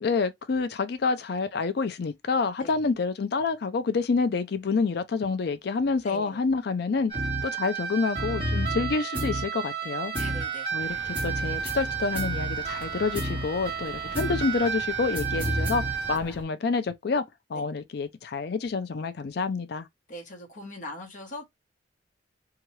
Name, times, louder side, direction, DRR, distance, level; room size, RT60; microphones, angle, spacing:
voice 1, 0.0-7.1 7.4-10.1 10.7-15.8 16.1-17.2 17.5-19.9, left 4 dB, 60° left, 0.4 m, -28 dB
voice 2, 6.0-6.4 10.1-10.7 10.9-11.0 17.5-17.6 20.1-21.4, left 1 dB, 45° left, 1.0 m, -41 dB
sound 1, 7.1-16.2, right 4 dB, 30° right, 1.3 m, -30 dB
sound 2, 10.8-16.4, equal, 5° left, 0.7 m, -44 dB
2.9 x 2.3 x 3.0 m
head